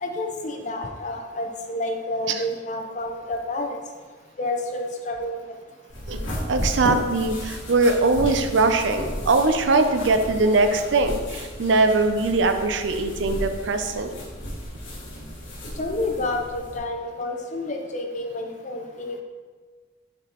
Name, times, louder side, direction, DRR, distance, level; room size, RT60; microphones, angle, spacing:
voice 1, 0.0-3.8 4.4-5.4 15.8-19.2, left 2 dB, 40° left, 3 dB, 0.7 m, -29 dB
sound 1, 5.9-16.8, equal, 90° left, 1.6 m, -34 dB
voice 2, 6.5-14.2, right 3 dB, 75° right, 7 dB, 0.5 m, -21 dB
6.8 x 5.0 x 3.0 m, 1.4 s
head